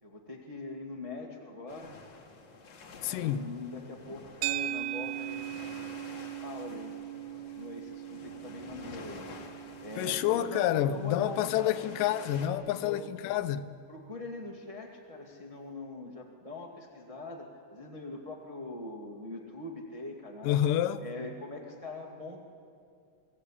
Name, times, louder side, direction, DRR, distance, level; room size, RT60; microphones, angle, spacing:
voice 1, 0.0-2.0 3.0-5.8 6.1-7.0 7.5-9.2 9.8-11.8 12.3-12.5 12.8-13.0 13.9-20.6 21.0-22.4, left 2 dB, 20° right, 0.9 m, -42 dB
sound 1, 1.7-12.5, left 4 dB, 50° left, 1.6 m, -50 dB
voice 2, 3.0-3.5 10.0-13.7 20.4-21.0, left 12 dB, 90° left, 2.4 m, -28 dB
sound 2, 4.4-12.9, right 14 dB, 80° right, 2.1 m, -40 dB
23.0 x 17.0 x 8.5 m
omnidirectional pair, 3.7 m